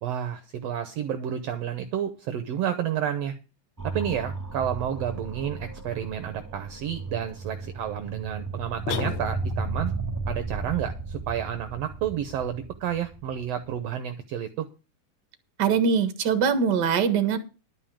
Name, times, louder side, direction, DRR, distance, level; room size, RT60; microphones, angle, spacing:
voice 1, 0.0-3.3 3.8-9.9 10.3-14.7, right 9 dB, 70° right, 9 dB, 1.8 m, -30 dB
sound 1, 3.8-13.9, right 3 dB, 5° right, 1.9 m, -35 dB
sound 2, 8.9-9.8, left 7 dB, 75° left, 2.3 m, -33 dB
voice 2, 15.6-17.4, right 6 dB, 45° right, 9 dB, 1.7 m, -22 dB
11.5 x 5.5 x 8.7 m, 0.32 s
omnidirectional pair, 3.4 m